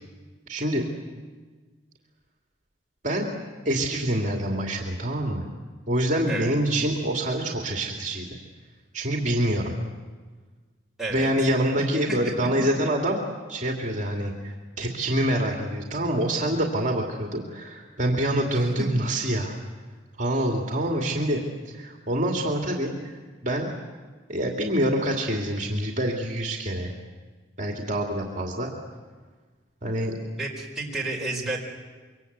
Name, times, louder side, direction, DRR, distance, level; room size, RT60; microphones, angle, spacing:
voice 1, 0.5-0.8 3.0-3.3 3.6-5.5 5.9-8.3 8.9-9.7 11.1-13.2 13.5-19.6 20.2-23.7 24.3-26.9 27.6-28.7 29.8-30.2, right 1 dB, 40° right, 1 dB, 2.5 m, -26 dB
voice 2, 11.0-11.3 11.8-12.5 18.5-18.9 30.4-31.6, right 2 dB, ahead, -4 dB, 4.5 m, -32 dB
26.0 x 24.0 x 8.2 m, 1.4 s
head